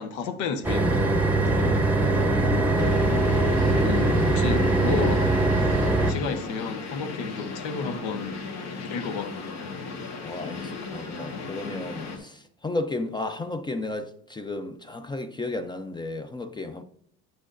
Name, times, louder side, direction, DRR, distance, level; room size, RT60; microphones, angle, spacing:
voice 1, 0.0-1.7 3.8-5.3 5.6-5.8 6.1-8.4 8.9-9.3, left 5 dB, 80° left, 0.9 m, -32 dB
sound 1, 0.6-6.1, right 2 dB, 5° right, 0.8 m, -22 dB
voice 2, 2.3-3.0 10.2-16.8, left 2 dB, 15° left, 0.4 m, -34 dB
sound 2, 2.8-12.2, left 4 dB, 65° left, 1.4 m, -36 dB
8.2 x 6.1 x 2.5 m
cardioid pair, 110°, 29 cm